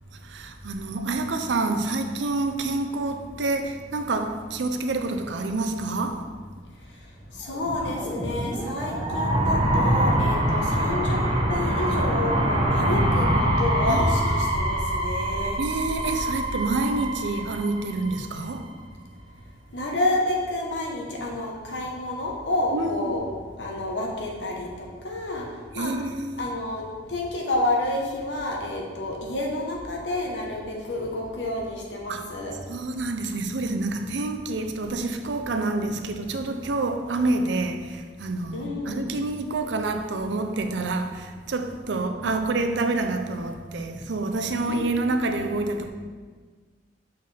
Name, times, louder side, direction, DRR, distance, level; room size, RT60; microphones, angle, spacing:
voice 1, 0.3-6.2 13.9-14.5 15.6-18.6 22.7-23.1 25.7-26.5 32.1-32.3 32.7-45.9, right 2 dB, 85° right, 0.5 m, -28 dB
voice 2, 7.4-11.2 11.5-15.6 19.7-23.3 23.6-25.5 25.7-25.9 26.4-32.6 38.5-39.0 41.9-42.3 44.6-45.1, left 1 dB, 85° left, 1.1 m, -29 dB
sound 1, 7.5-18.4, right 1 dB, 25° right, 0.8 m, -24 dB
6.6 x 4.5 x 3.3 m
head